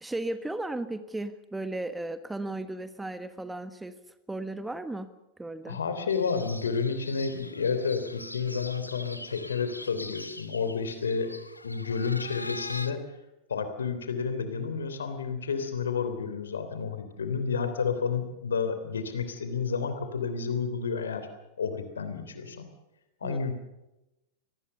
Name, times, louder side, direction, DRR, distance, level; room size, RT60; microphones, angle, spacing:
voice 1, 0.0-3.9 4.3-5.1 5.4-5.8 23.2-23.4, right 2 dB, 5° right, 12 dB, 1.4 m, -35 dB
voice 2, 5.7-11.3 11.6-13.0 13.5-21.3 21.6-22.7 23.2-23.5, left 5 dB, 70° left, 9 dB, 3.3 m, -30 dB
sound 1, 6.1-12.9, left 2 dB, 85° left, 1.3 m, -43 dB
25.0 x 19.5 x 6.8 m, 0.95 s
figure-of-eight pair, 90°, 0 cm